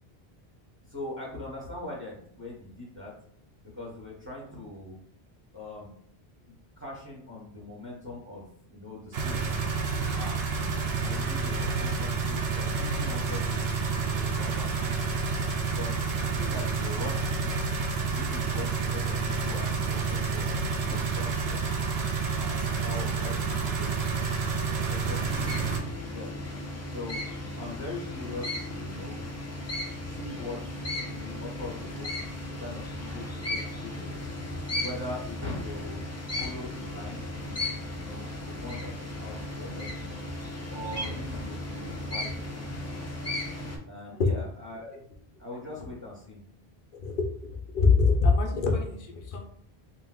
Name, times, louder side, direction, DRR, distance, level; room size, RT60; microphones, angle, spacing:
voice 1, 0.9-3.1 3.7-5.0 5.5-5.9 6.5-9.6 10.1-13.6 14.1-15.1 15.7-17.5 18.1-21.7 22.3-23.9 24.5-26.4 26.9-27.2 27.6-29.2 30.0-32.1 32.6-34.1 34.8-36.0 36.4-37.6 37.9-38.9 39.2-40.1 40.7-42.9 43.9-45.0 45.4-46.4, left 2 dB, 10° right, -3 dB, 0.9 m, -41 dB
sound 1, 9.1-25.8, right 4 dB, 85° right, 0.8 m, -29 dB
sound 2, 25.2-43.8, left 1 dB, 25° left, 0.3 m, -36 dB
voice 2, 46.9-47.3 47.7-49.5, left 4 dB, 60° left, 2 dB, 0.7 m, -23 dB
2.9 x 2.0 x 3.7 m, 0.62 s
omnidirectional pair, 1.0 m